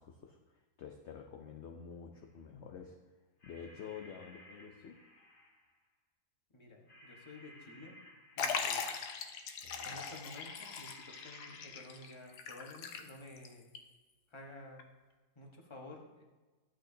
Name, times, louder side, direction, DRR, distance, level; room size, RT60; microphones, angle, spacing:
voice 1, 0.0-3.0 3.4-5.0 9.6-10.0, left 7 dB, 60° left, 2 dB, 0.8 m, -49 dB
sound 1, 2.1-2.4 3.4-5.8 6.9-9.3 10.3-12.6, left 1 dB, 35° left, 1.4 m, -59 dB
voice 2, 6.5-8.0 8.4-9.0 9.8-13.7 14.3-14.9 15.3-16.2, left 2 dB, 20° left, 0 dB, 1.2 m, -52 dB
Liquid, 8.4-13.5 13.8-13.9 14.8-14.9, left 6 dB, 85° left, 1.3 m, -40 dB
12.5 x 8.5 x 2.7 m, 1.2 s
omnidirectional pair, 1.6 m